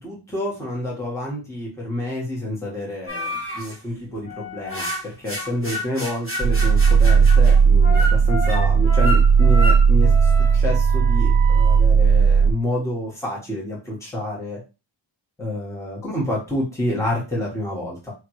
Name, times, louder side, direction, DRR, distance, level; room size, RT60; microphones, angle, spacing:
voice 1, 0.0-14.6 15.4-18.1, left 1 dB, 5° left, -4 dB, 1.5 m, -28 dB
sound 1, 3.1-3.7 4.3-11.8, equal, 25° left, 1.7 m, -30 dB
sound 2, 6.4-12.5, right 6 dB, 45° right, 1.0 m, -15 dB
4.5 x 3.5 x 3.1 m, 0.30 s
wide cardioid pair, 155°, 48 cm